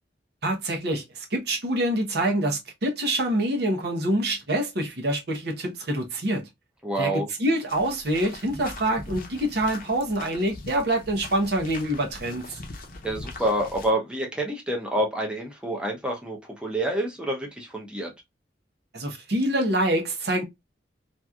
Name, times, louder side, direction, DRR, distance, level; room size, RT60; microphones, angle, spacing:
voice 1, 0.4-6.4 7.0-12.6 18.9-20.4, right 1 dB, 60° right, 0.9 m, -26 dB
voice 2, 6.8-7.3 13.0-18.1, right 1 dB, 5° right, 0.7 m, -28 dB
sound 1, 7.7-13.9, left 2 dB, 50° left, 0.6 m, -41 dB
3.0 x 2.6 x 2.3 m
head